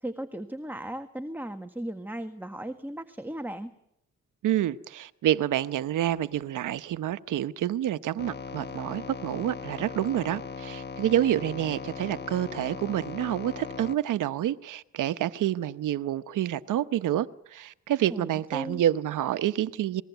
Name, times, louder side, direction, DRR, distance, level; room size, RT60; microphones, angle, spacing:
voice 1, 0.0-3.7 18.1-18.8, right 1 dB, 5° right, 6 dB, 1.6 m, -36 dB
voice 2, 4.4-20.0, right 12 dB, 85° right, 13 dB, 1.0 m, -28 dB
sound 1, 8.2-14.0, left 5 dB, 35° left, 1.3 m, -39 dB
27.0 x 21.0 x 8.1 m, 0.78 s
cardioid pair, 75°, 30 cm